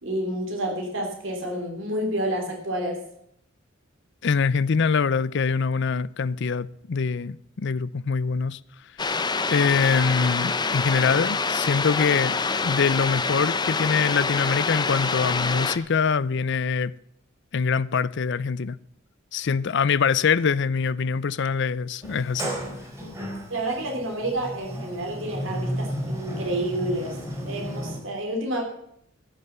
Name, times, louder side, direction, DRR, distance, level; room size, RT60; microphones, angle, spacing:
voice 1, 0.0-3.0 23.5-27.2 27.4-28.6, right 1 dB, 70° right, 3.3 m, -29 dB
voice 2, 4.2-8.6 9.5-12.4 12.6-16.9 17.5-18.8 19.3-22.5, left 5 dB, 60° left, 0.5 m, -24 dB
sound 1, 9.0-15.8, left 4 dB, 20° left, 0.7 m, -26 dB
Sliding door, 22.0-28.0, equal, 15° right, 4.4 m, -33 dB
16.5 x 6.8 x 6.8 m
head